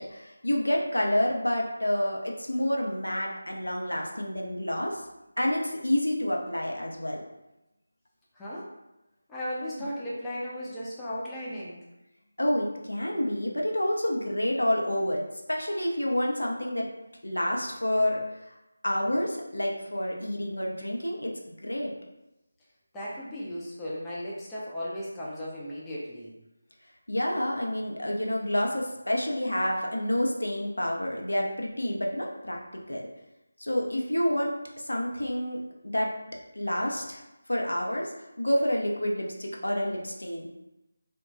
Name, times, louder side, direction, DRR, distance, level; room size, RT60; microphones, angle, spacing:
voice 1, 0.0-5.0 5.4-7.2 12.4-15.2 15.5-16.9 17.2-18.2 18.5-18.6 18.8-21.3 21.6-21.9 27.1-33.0 33.6-34.5 34.8-36.1 36.6-37.2 37.5-38.1 38.4-40.5, left 1 dB, 75° left, 0 dB, 0.5 m, -28 dB
voice 2, 8.3-8.7 9.3-11.8 22.9-26.3, equal, 10° left, -8 dB, 0.4 m, -36 dB
2.8 x 2.1 x 2.5 m, 0.94 s
figure-of-eight pair, 160°, 0 cm